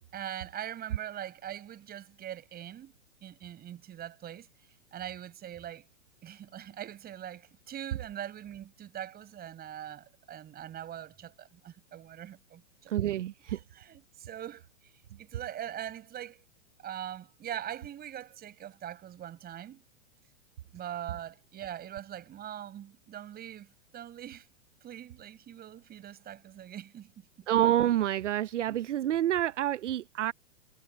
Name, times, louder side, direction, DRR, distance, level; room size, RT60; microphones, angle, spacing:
voice 1, 0.1-2.9 3.2-4.5 4.9-5.9 6.2-12.9 13.5-14.6 15.2-16.4 16.8-19.8 20.7-24.5 24.8-27.1 27.4-27.5 28.7-28.8, right 11 dB, 25° right, 7.3 m, -42 dB
voice 2, 12.9-13.6 27.5-30.3, right 12 dB, 70° right, 0.8 m, -28 dB
hypercardioid pair, 115°, 38 cm